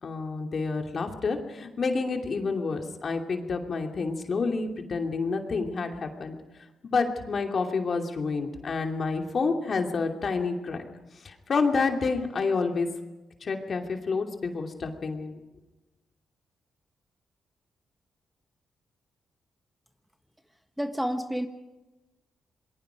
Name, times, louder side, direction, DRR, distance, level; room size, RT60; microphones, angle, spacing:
voice 1, 0.0-6.4 6.8-10.8 11.2-12.9 13.4-15.4, left 4 dB, 55° left, 3 dB, 2.7 m, -29 dB
voice 2, 20.8-21.5, equal, 5° right, 7 dB, 1.4 m, -29 dB
27.5 x 21.0 x 5.1 m, 1.1 s
cardioid pair, 70°, 0 cm